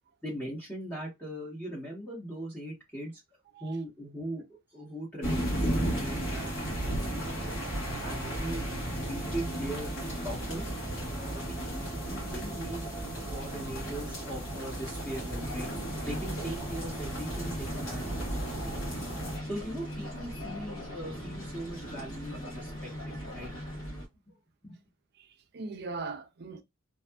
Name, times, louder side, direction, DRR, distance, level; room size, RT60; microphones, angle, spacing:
voice 1, 0.2-3.2 3.6-4.4 4.7-7.5 8.0-8.7 8.9-9.9 10.2-10.7 11.1-15.7 16.0-18.9 19.5-23.5 24.3-24.4 24.6-24.8, right 1 dB, 10° left, 1.0 m, -40 dB
sound 1, 5.2-19.4, right 1 dB, 60° left, 1.3 m, -34 dB
sound 2, 15.4-24.1, equal, 75° left, 1.1 m, -40 dB
voice 2, 25.2-26.6, right 3 dB, 50° right, 0.4 m, -40 dB
2.6 x 2.4 x 2.2 m
head